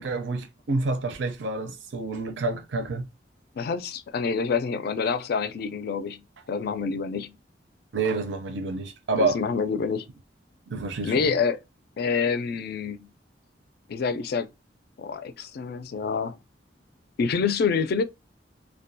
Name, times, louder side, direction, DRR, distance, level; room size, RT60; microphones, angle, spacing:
voice 1, 0.0-3.1 7.9-9.4 10.7-11.3, right 3 dB, 85° right, 0.5 m, -28 dB
voice 2, 3.6-6.2 6.5-7.3 9.2-10.1 11.0-11.6 12.0-13.1 13.9-14.5 15.0-16.4 17.2-18.0, left 5 dB, 60° left, 0.3 m, -27 dB
2.3 x 2.1 x 2.6 m
head